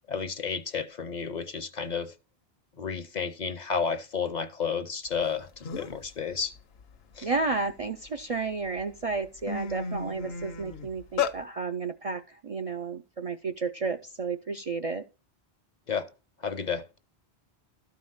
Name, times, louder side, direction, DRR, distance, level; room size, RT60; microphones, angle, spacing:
voice 1, 0.1-2.1 2.8-6.5 7.2-7.3 15.9-16.1 16.4-16.9, left 6 dB, 45° left, 0.7 m, -31 dB
sound 1, 5.3-5.4 5.6-6.1 6.5-8.1 8.7-8.8 9.1-11.4, left 6 dB, 65° left, 1.0 m, -33 dB
voice 2, 7.2-15.0, right 4 dB, 45° right, 0.5 m, -32 dB
12.5 x 4.8 x 5.6 m
omnidirectional pair, 1.1 m